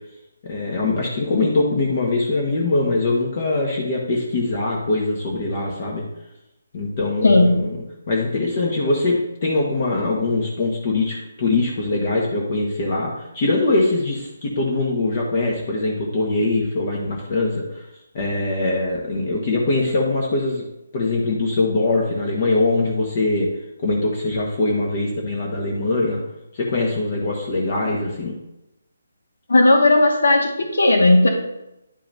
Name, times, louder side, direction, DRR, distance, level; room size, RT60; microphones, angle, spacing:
voice 1, 0.4-6.0 6.7-7.8 8.1-17.8 18.1-20.6 20.9-23.5 23.8-26.2 26.5-28.3, left 2 dB, 45° left, -2 dB, 1.5 m, -22 dB
voice 2, 7.2-7.7 29.5-31.3, left 2 dB, 75° left, 1 dB, 2.0 m, -15 dB
10.5 x 5.5 x 2.8 m, 0.88 s
hypercardioid pair, 155°, 0 cm